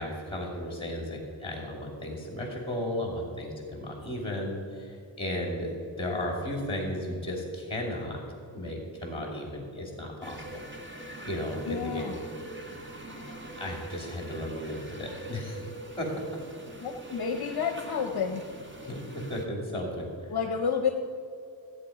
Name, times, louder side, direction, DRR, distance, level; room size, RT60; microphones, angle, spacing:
voice 1, 0.0-8.2 8.5-10.6 11.2-12.0 13.1-13.2 13.6-15.6 16.0-16.1 18.9-20.3, left 1 dB, 10° left, 0 dB, 2.7 m, -34 dB
sound 1, 10.2-19.4, right 2 dB, 25° right, 1.1 m, -43 dB
voice 2, 11.7-12.2 16.8-18.4 20.3-20.9, left 6 dB, 50° left, 4 dB, 0.8 m, -30 dB
15.0 x 8.4 x 5.0 m, 2.4 s
wide cardioid pair, 175°, 47 cm